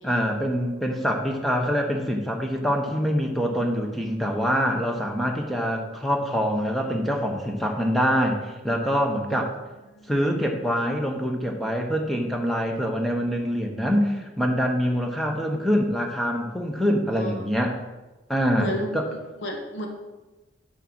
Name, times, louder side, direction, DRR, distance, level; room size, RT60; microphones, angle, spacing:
voice 1, 0.0-9.5 10.1-17.8 18.3-19.1, equal, ahead, 2 dB, 0.9 m, -25 dB
voice 2, 18.6-19.9, equal, 75° left, 1 dB, 1.6 m, -32 dB
6.6 x 6.3 x 6.0 m, 1.1 s
head